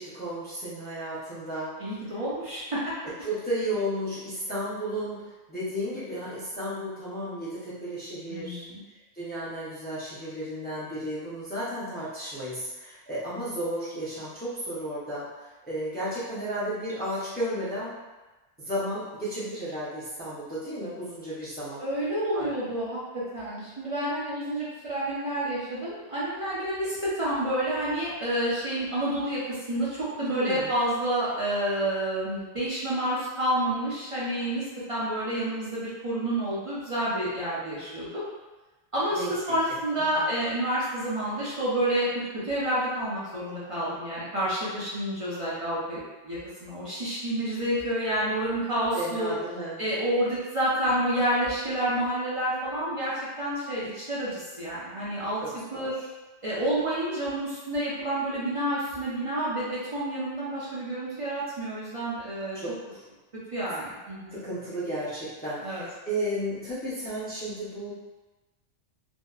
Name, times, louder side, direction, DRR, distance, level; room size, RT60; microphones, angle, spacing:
voice 1, 0.0-1.7 3.2-8.6 9.1-17.9 18.6-21.8 22.3-22.5 30.2-30.7 39.1-39.8 40.1-40.3 48.9-49.8 55.4-55.9 62.5-63.1 64.3-67.9, equal, 10° left, -10 dB, 0.6 m, -33 dB
voice 2, 1.8-2.8 8.3-8.8 21.8-38.2 38.9-49.3 49.8-55.4 55.7-55.9 56.4-62.6 63.5-64.4 65.6-65.8, right 1 dB, 40° right, -9 dB, 0.6 m, -29 dB
2.7 x 2.2 x 2.3 m, 1.2 s
omnidirectional pair, 1.2 m